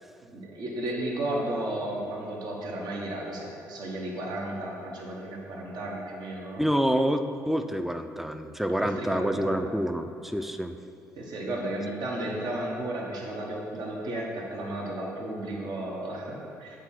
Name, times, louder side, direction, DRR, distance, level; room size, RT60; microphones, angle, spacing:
voice 1, 0.2-6.6 8.8-9.6 11.2-16.8, right 1 dB, 60° right, -2 dB, 1.1 m, -34 dB
voice 2, 6.6-10.8, equal, 5° right, 8 dB, 0.4 m, -27 dB
8.0 x 3.8 x 4.3 m, 2.7 s
hypercardioid pair, 50°, 8 cm